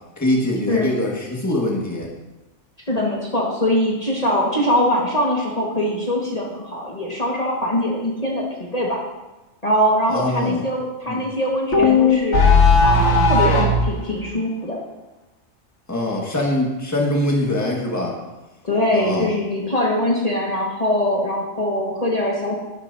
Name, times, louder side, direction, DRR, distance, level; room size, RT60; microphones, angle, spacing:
voice 1, 0.2-2.1 10.1-10.6 11.1-11.2 15.9-18.2 18.9-19.3, left 1 dB, 15° left, -2 dB, 1.7 m, -23 dB
voice 2, 2.9-9.0 9.6-14.8 18.6-22.6, left 1 dB, 35° left, -4 dB, 1.7 m, -22 dB
sound 1, 11.7-13.9, left 3 dB, 90° left, 1.5 m, -15 dB
12.0 x 12.0 x 2.7 m, 1.1 s
omnidirectional pair, 1.2 m